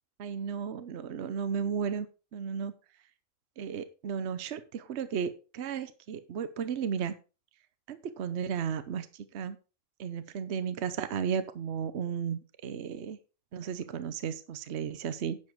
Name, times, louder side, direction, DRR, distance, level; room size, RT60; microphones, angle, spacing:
voice 1, 0.2-2.1 2.3-2.7 3.6-7.1 7.9-9.6 10.0-13.2 13.5-15.4, right 7 dB, 60° right, 13 dB, 1.0 m, -34 dB
10.5 x 7.4 x 4.6 m, 0.33 s
omnidirectional pair, 1.3 m